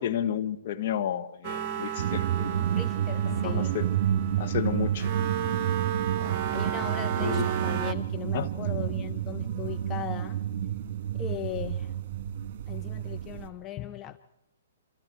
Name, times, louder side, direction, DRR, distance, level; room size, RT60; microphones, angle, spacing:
voice 1, 0.0-2.6 3.3-3.9 4.4-5.1 7.2-7.5 8.3-8.5, left 10 dB, 50° left, 7 dB, 1.6 m, -31 dB
sound 1, 1.4-7.9, right 9 dB, 35° right, 1.3 m, -33 dB
sound 2, 2.0-13.5, right 10 dB, 50° right, 2.5 m, -30 dB
voice 2, 2.6-3.8 6.5-10.4 11.1-11.9 12.7-14.2, left 11 dB, 25° left, 9 dB, 0.8 m, -38 dB
27.5 x 27.0 x 4.7 m, 0.85 s
hypercardioid pair, 125°, 0 cm